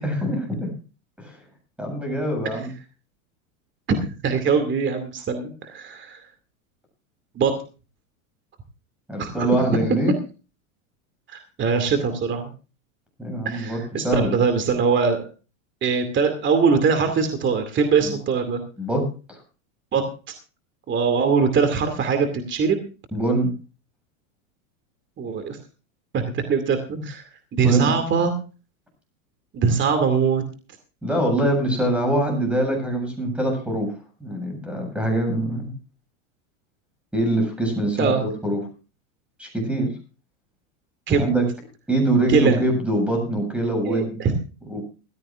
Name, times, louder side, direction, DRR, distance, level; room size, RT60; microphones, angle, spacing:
voice 1, 0.0-0.7 1.2-1.4 1.8-2.7 9.1-10.1 13.2-14.4 18.0-18.1 18.8-19.4 23.1-23.5 26.9-27.0 27.6-28.0 31.0-33.9 34.2-35.6 37.1-38.6 39.4-39.9 41.2-41.5 41.9-44.2 44.7-44.8, right 1 dB, 5° right, 3 dB, 7.7 m, -23 dB
voice 2, 4.2-6.2 7.4-7.5 9.2-9.7 11.3-12.5 13.4-15.3 15.8-18.6 19.9-20.0 20.9-22.8 25.2-25.6 26.1-26.8 27.0-27.2 27.5-28.3 29.5-30.4 38.0-38.2 41.1-41.3 42.3-42.6 43.8-44.3, right 5 dB, 25° right, 8 dB, 2.4 m, -22 dB
19.5 x 15.0 x 2.5 m, 0.34 s
hypercardioid pair, 120°, 43 cm